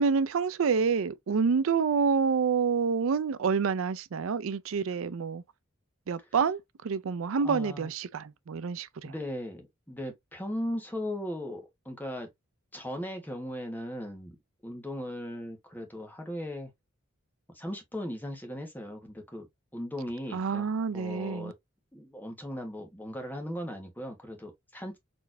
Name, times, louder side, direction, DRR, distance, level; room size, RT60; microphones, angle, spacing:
voice 1, 0.0-5.4 6.1-9.1 20.3-21.5, right 5 dB, 70° right, 0.4 m, -28 dB
voice 2, 7.4-7.9 9.0-12.3 12.7-14.4 14.6-16.7 17.5-19.5 19.7-20.6 20.9-21.5 21.9-25.0, equal, 10° left, 1.3 m, -37 dB
4.3 x 3.3 x 2.6 m
head